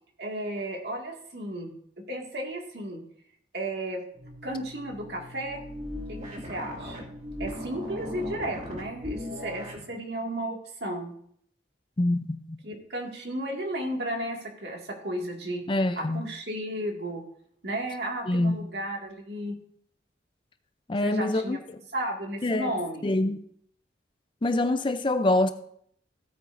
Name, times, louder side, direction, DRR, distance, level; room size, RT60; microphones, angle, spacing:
voice 1, 0.2-1.7 2.1-3.0 3.5-4.0 4.4-5.6 6.1-7.1 7.4-11.1 12.6-15.6 16.0-17.2 17.6-19.6 21.0-21.6 21.9-23.1, right 1 dB, 60° right, 2.1 m, -33 dB
sound 1, 4.2-9.9, left 1 dB, 35° right, 2.2 m, -38 dB
voice 2, 12.0-12.6 15.7-16.2 18.3-18.7 20.9-21.6 22.4-22.7 23.0-23.4 24.4-25.5, left 2 dB, 25° left, 0.5 m, -25 dB
15.5 x 8.9 x 2.6 m
head